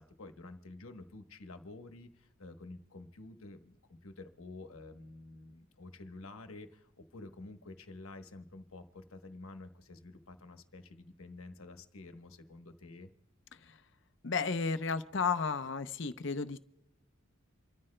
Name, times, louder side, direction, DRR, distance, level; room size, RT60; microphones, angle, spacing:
voice 1, 0.0-13.1, left 2 dB, 85° left, 7 dB, 1.1 m, -50 dB
voice 2, 14.2-16.6, left 5 dB, 60° left, 11 dB, 0.6 m, -33 dB
28.0 x 13.5 x 2.2 m, 0.90 s
head